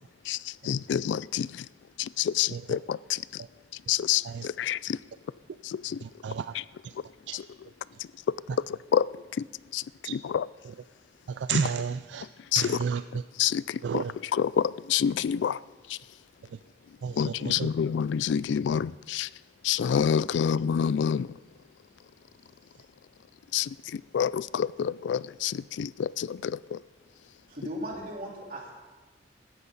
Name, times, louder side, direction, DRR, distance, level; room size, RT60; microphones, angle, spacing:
voice 1, 0.7-1.5 2.0-3.2 3.9-5.0 5.6-6.0 6.5-6.6 7.3-7.4 8.9-9.0 9.7-9.8 10.1-10.5 11.5-11.6 12.5-12.8 13.4-14.0 14.3-15.6 17.2-19.3 19.6-21.3 23.5-23.7 24.1-26.8, left 8 dB, 80° left, 0.3 m, -27 dB
voice 2, 6.0-6.5 7.3-7.4 10.0-10.2 11.3-12.2 12.6-13.2 13.8-14.1 17.0-17.7, right 6 dB, 75° right, 0.4 m, -32 dB
voice 3, 27.5-28.7, equal, 55° right, 3.7 m, -37 dB
17.5 x 14.0 x 4.0 m
head